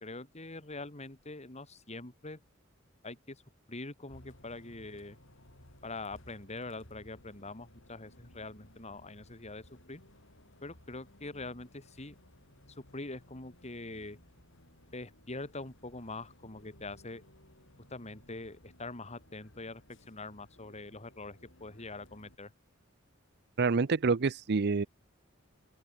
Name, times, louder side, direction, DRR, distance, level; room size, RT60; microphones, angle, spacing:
voice 1, 0.0-2.4 3.0-3.4 3.7-5.2 5.8-10.0 10.6-12.2 12.7-14.2 14.9-17.2 17.9-22.5, left 2 dB, 35° left, 2.6 m, -44 dB
Bus, 4.1-22.4, left 1 dB, 65° left, 7.5 m, -59 dB
voice 2, 23.6-24.9, right 4 dB, 55° right, 0.6 m, -27 dB
open air
head